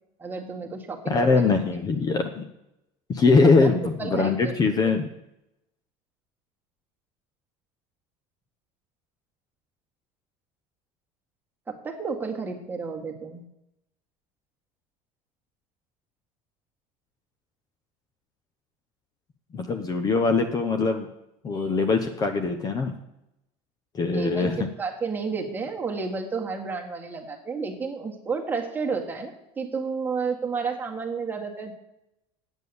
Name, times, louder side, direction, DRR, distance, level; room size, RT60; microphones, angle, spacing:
voice 1, 0.2-1.3 3.4-3.7 4.0-4.5 4.8-4.9 11.7-13.4 24.1-31.7, right 4 dB, 15° right, 0 dB, 1.8 m, -31 dB
voice 2, 1.1-2.4 3.1-5.1 19.5-21.1 21.4-22.9 23.9-24.7, left 4 dB, 30° left, 6 dB, 0.9 m, -22 dB
9.1 x 8.3 x 7.1 m, 0.86 s
cardioid pair, 145°, 14 cm